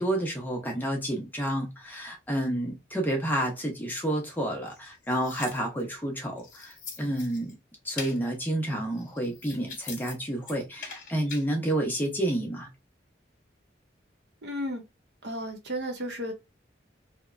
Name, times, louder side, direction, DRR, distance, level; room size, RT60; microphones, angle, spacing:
voice 1, 0.0-7.5 7.8-12.7, right 1 dB, 10° left, 0.6 m, -30 dB
sound 1, 4.7-5.9 6.4-7.5 8.0-8.2 8.9-10.1 10.4-11.5, left 5 dB, 45° left, 0.9 m, -42 dB
voice 2, 14.4-14.8 15.2-16.3, equal, 65° right, 0.8 m, -33 dB
2.8 x 2.1 x 2.4 m
head